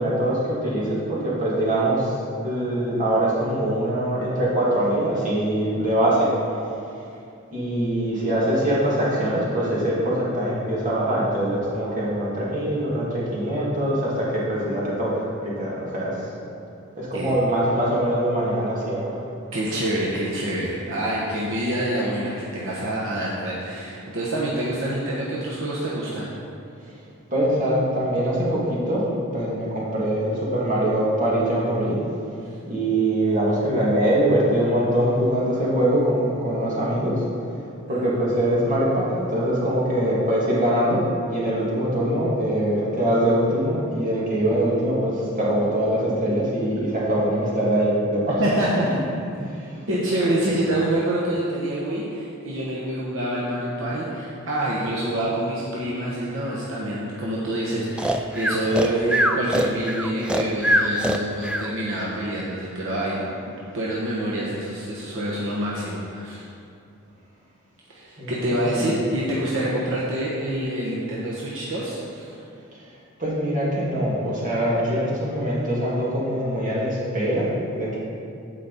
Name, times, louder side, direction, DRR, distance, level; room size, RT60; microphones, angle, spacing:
voice 1, 0.0-2.2 2.4-6.3 7.5-16.3 17.0-19.2 27.3-32.0 32.7-37.2 37.9-48.4 50.5-50.6 68.2-69.0 73.2-78.0, right 1 dB, 40° right, -6 dB, 2.4 m, -23 dB
voice 2, 19.5-26.3 37.9-38.1 48.4-48.9 49.4-49.5 49.9-63.2 63.7-66.5 67.9-72.4, right 1 dB, 65° right, -5 dB, 1.2 m, -26 dB
Breathing, 58.0-61.7, equal, 5° right, 0.3 m, -22 dB
15.0 x 5.2 x 4.1 m, 2.5 s
head